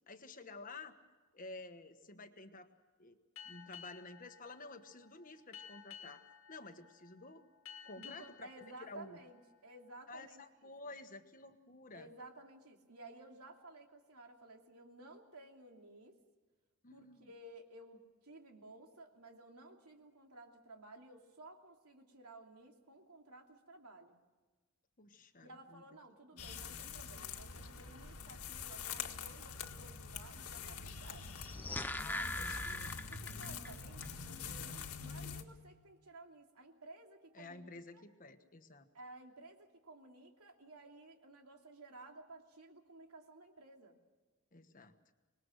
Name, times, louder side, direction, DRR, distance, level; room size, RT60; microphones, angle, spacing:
voice 1, 0.1-0.9 1.3-2.7 3.0-3.2 3.4-6.2 6.5-7.4 7.8-8.5 8.8-9.2 10.1-12.1 16.8-17.3 25.0-25.8 26.3-26.5 32.0-32.9 37.3-38.9 44.5-44.9, left 3 dB, 35° left, 8 dB, 1.3 m, -52 dB
Boat Water vehicle, 3.4-10.4, left 8 dB, 65° left, 1.8 m, -56 dB
voice 2, 7.9-10.7 11.9-16.2 16.9-24.2 25.4-31.3 32.1-38.0 38.9-44.0, right 2 dB, 85° right, 3 dB, 2.9 m, -55 dB
sound 1, 26.4-35.4, left 6 dB, 80° left, 1.9 m, -45 dB
sound 2, 31.3-33.7 34.0-34.1, left 2 dB, 10° left, 0.6 m, -41 dB
25.5 x 20.5 x 6.4 m, 1.3 s
head